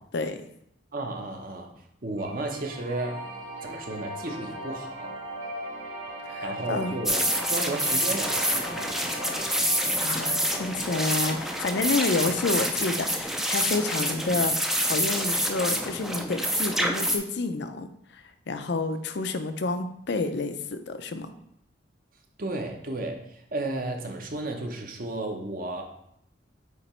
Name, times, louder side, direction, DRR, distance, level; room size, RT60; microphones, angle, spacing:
voice 1, 0.9-1.7 2.0-3.3 3.6-5.1 6.4-8.9 22.4-25.8, right 2 dB, 45° right, 3 dB, 0.9 m, -33 dB
sound 1, 2.2-13.2, right 1 dB, 80° right, 2.5 m, -39 dB
voice 2, 6.3-6.9 10.0-14.5 14.8-17.9 18.5-21.3, left 3 dB, 60° left, 9 dB, 0.5 m, -29 dB
sound 2, 7.1-17.2, equal, ahead, 0.4 m, -27 dB
8.4 x 3.0 x 4.3 m, 0.74 s
head